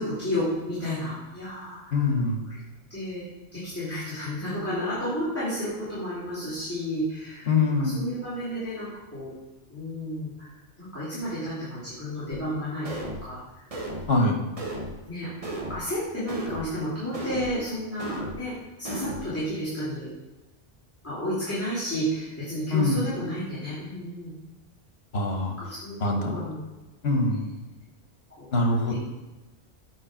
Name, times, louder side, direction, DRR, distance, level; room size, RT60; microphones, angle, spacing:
voice 1, 0.0-2.1 2.5-2.6 2.9-3.2 3.5-9.3 9.7-10.5 10.8-13.6 14.2-14.4 15.0-15.3 15.6-20.1 21.0-24.3 25.6-26.6 27.4-27.5 28.4-29.0, equal, 15° left, -13 dB, 3.0 m, -32 dB
voice 2, 1.9-2.4 7.5-8.0 14.1-14.4 22.7-23.1 25.1-25.5 26.0-26.3 27.0-27.5 28.5-29.0, left 3 dB, 75° left, 3 dB, 1.4 m, -23 dB
sound 1, 12.3-12.4 12.8-13.3 13.7-14.1 14.6-15.0 15.4-15.8 16.3-16.7 17.1-17.6 18.0-18.4 18.8-19.3, right 1 dB, 35° right, 1.0 m, -34 dB
8.6 x 4.8 x 5.0 m, 1.1 s
omnidirectional pair, 1.1 m